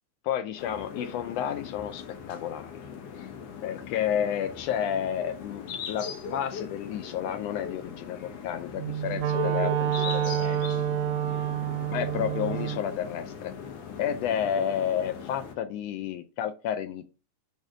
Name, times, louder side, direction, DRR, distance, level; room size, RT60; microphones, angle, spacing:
voice 1, 0.3-2.7 3.2-3.3 3.6-10.8 11.9-13.5 14.0-17.1, left 9 dB, 85° left, 9 dB, 1.4 m, -31 dB
sound 1, 0.6-15.5, left 6 dB, 65° left, 2.0 m, -40 dB
Wind instrument woodwind instrument, 8.7-12.9, right 10 dB, 80° right, 1.9 m, -28 dB
6.5 x 3.5 x 4.9 m, 0.32 s
omnidirectional pair, 3.4 m